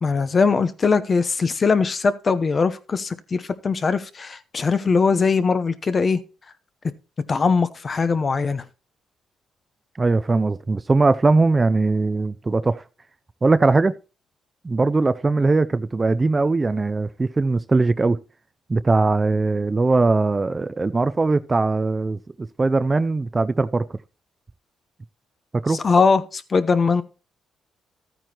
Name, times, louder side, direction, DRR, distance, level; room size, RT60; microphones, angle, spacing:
voice 1, 0.0-6.2 7.3-8.6 25.7-27.0, left 4 dB, 40° left, 0.9 m, -21 dB
voice 2, 10.0-12.8 13.4-13.9 14.6-18.2 18.7-22.2 22.6-23.8 25.6-25.8, right 3 dB, 25° right, 0.5 m, -20 dB
13.5 x 9.1 x 3.0 m
cardioid pair, 85°, 0 cm